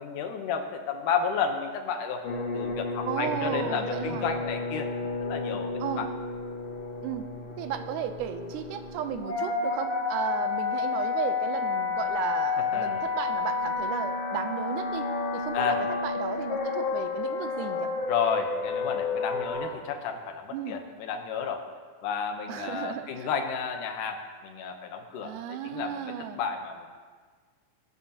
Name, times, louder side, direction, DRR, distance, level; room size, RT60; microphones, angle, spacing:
voice 1, 0.0-2.2 2.5-6.1 12.6-13.0 15.5-15.8 18.1-21.6 22.0-26.9, left 6 dB, 75° left, 5 dB, 2.5 m, -32 dB
sound 1, 2.2-19.7, left 4 dB, 55° left, 2.1 m, -31 dB
voice 2, 3.1-4.3 5.8-6.1 7.0-7.2 7.6-15.8 16.0-17.9 20.5-20.8 22.5-23.3 25.2-26.4, right 9 dB, 80° right, 8 dB, 2.1 m, -34 dB
18.5 x 11.5 x 2.9 m, 1.5 s
omnidirectional pair, 3.9 m